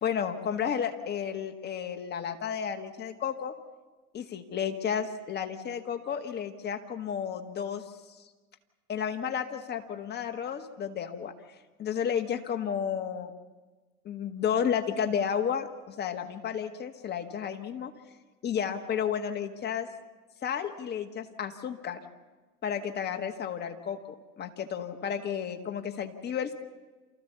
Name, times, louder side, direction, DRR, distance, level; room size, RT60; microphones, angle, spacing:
voice 1, 0.0-3.5 4.1-7.8 8.9-11.3 11.8-13.3 14.0-17.9 18.4-19.9 20.4-22.0 22.6-26.5, left 8 dB, 20° left, 6 dB, 1.6 m, -32 dB
28.5 x 14.5 x 7.0 m, 1.3 s
hypercardioid pair, 110°, 47 cm